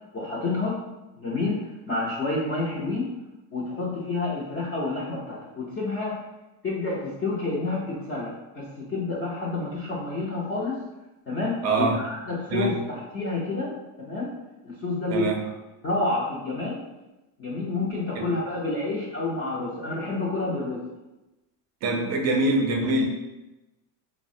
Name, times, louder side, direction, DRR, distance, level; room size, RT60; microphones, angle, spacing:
voice 1, 0.1-0.8 1.2-3.1 3.5-6.2 6.6-10.8 11.3-14.3 14.6-15.5 15.8-16.8 17.4-20.8, left 3 dB, 25° left, -7 dB, 0.4 m, -29 dB
voice 2, 11.6-12.0 12.5-12.8 15.1-15.4 17.8-18.4 21.8-23.0, right 2 dB, 35° right, 2 dB, 0.4 m, -25 dB
3.2 x 2.1 x 2.5 m, 1.0 s
supercardioid pair, 130°, 47 cm